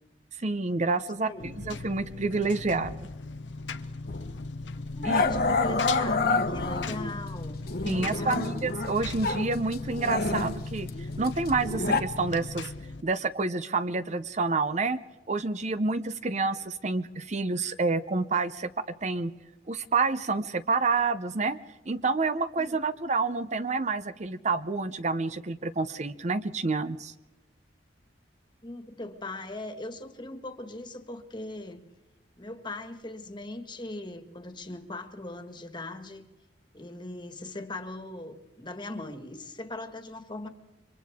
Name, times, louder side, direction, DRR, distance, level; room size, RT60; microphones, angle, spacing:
voice 1, 0.4-3.0 5.0-5.2 7.9-12.7 13.0-15.0 15.3-19.3 19.7-21.6 21.9-27.1, right 3 dB, 40° right, 12 dB, 0.6 m, -28 dB
Engine, 1.4-13.0, left 3 dB, 75° left, 0.9 m, -37 dB
Growling, 4.1-4.3 5.0-7.1 7.7-9.5 9.7-12.0, left 3 dB, 55° left, 1.2 m, -28 dB
voice 2, 4.9-8.6 16.2-16.3 22.6-23.0 28.6-31.9 32.4-36.3 36.7-40.5, left 2 dB, 25° left, 7 dB, 1.7 m, -40 dB
30.0 x 24.5 x 3.6 m, 1.1 s
head